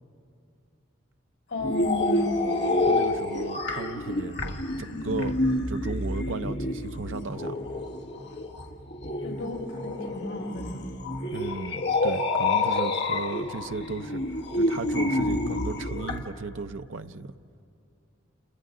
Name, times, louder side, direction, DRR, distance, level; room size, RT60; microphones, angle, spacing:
voice 1, 1.5-2.4 9.2-11.0, left 1 dB, 85° left, 2.5 m, -33 dB
sound 1, 1.6-16.2, left 2 dB, 60° left, 1.5 m, -28 dB
voice 2, 2.9-5.4 5.7-7.6 11.3-14.2 14.5-17.3, right 3 dB, 80° right, 0.7 m, -35 dB
29.5 x 29.5 x 3.9 m
head